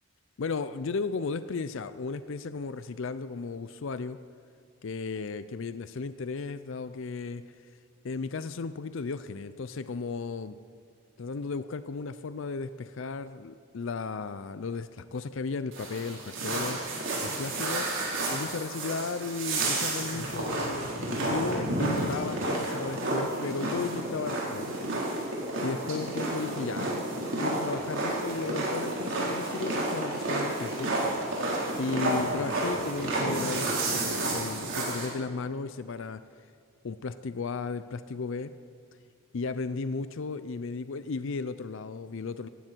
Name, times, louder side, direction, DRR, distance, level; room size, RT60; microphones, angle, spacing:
voice 1, 0.4-4.2 4.8-7.4 8.0-10.6 11.2-16.8 17.2-17.9 18.3-24.7 25.6-27.0 27.4-30.9 31.8-36.2 36.8-38.5 39.3-42.5, left 4 dB, 60° left, 13 dB, 0.5 m, -35 dB
sound 1, 15.7-35.1, right 2 dB, 55° right, 4.2 m, -31 dB
17.5 x 15.5 x 4.5 m, 2.3 s
head